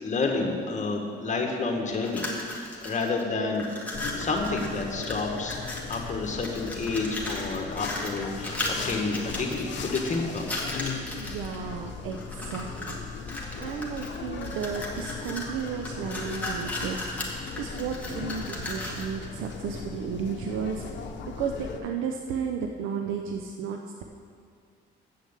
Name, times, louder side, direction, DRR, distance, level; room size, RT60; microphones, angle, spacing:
voice 1, 0.0-2.2 2.8-3.7 4.2-8.6 8.8-10.8, left 3 dB, 35° left, 2 dB, 1.6 m, -29 dB
sound 1, 1.9-3.2 3.5-6.1 6.4-11.6 12.1-13.0 13.3-19.1, left 1 dB, 5° left, 1.9 m, -36 dB
sound 2, 3.9-21.8, left 5 dB, 65° left, 0.9 m, -38 dB
voice 2, 11.1-13.0 13.6-20.9 21.2-24.0, right 6 dB, 90° right, 3 dB, 0.6 m, -33 dB
7.9 x 6.6 x 8.2 m, 2.2 s
cardioid pair, 90°, 20 cm